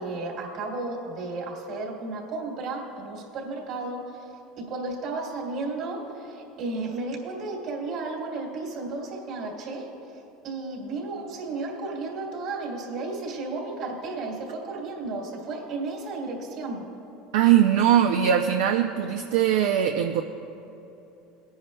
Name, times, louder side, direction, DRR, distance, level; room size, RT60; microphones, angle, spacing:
voice 1, 0.0-4.3 4.6-9.9 10.4-16.8, right 3 dB, 60° right, 0 dB, 2.8 m, -33 dB
voice 2, 17.3-20.2, right 10 dB, 80° right, 5 dB, 0.5 m, -21 dB
21.0 x 9.9 x 2.2 m, 2.9 s
supercardioid pair, 100°, 0 cm